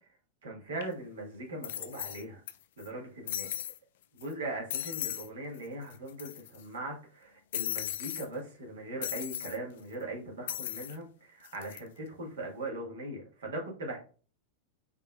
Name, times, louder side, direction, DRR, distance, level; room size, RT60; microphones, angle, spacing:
voice 1, 0.4-2.4 2.8-3.5 4.1-14.0, right 2 dB, 65° right, -1 dB, 1.6 m, -40 dB
sound 1, 0.8-0.9 1.6-2.5 2.8-2.9 3.3-3.8 4.2-4.3 4.7-5.3 5.6-5.7 5.9-6.6 7.5-8.3 9.0-9.6 10.5-11.0 11.4-11.8, left 12 dB, 55° left, 0.3 m, -37 dB
4.6 x 3.4 x 2.4 m, 0.38 s
figure-of-eight pair, 90°, 0 cm